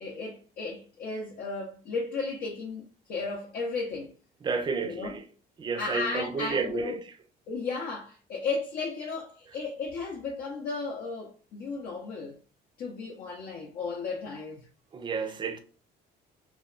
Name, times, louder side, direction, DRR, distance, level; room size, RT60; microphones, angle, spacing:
voice 1, 0.0-2.8 3.1-4.1 4.8-5.2 5.8-7.0 7.5-12.4 12.8-14.7, left 4 dB, 65° left, 0.6 m, -34 dB
voice 2, 4.4-5.2 5.6-7.0 14.9-15.6, right 5 dB, 25° right, 0.4 m, -31 dB
2.7 x 2.2 x 2.4 m
cardioid pair, 110°, 17 cm